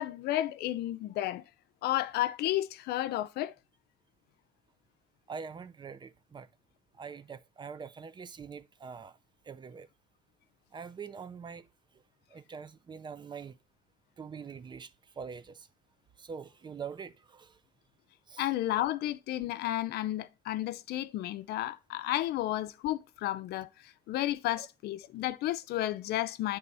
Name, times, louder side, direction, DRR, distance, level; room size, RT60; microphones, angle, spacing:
voice 1, 0.0-1.4 1.8-3.5 18.4-26.6, left 14 dB, 75° left, 0.5 m, -32 dB
voice 2, 5.3-6.5 6.9-9.2 9.4-9.9 10.7-11.7 11.9-12.0 12.3-13.6 14.2-15.7 16.2-17.6 18.3-18.5 24.6-24.7, right 6 dB, 25° right, 0.4 m, -44 dB
8.2 x 3.4 x 5.4 m
cardioid pair, 110°, 17 cm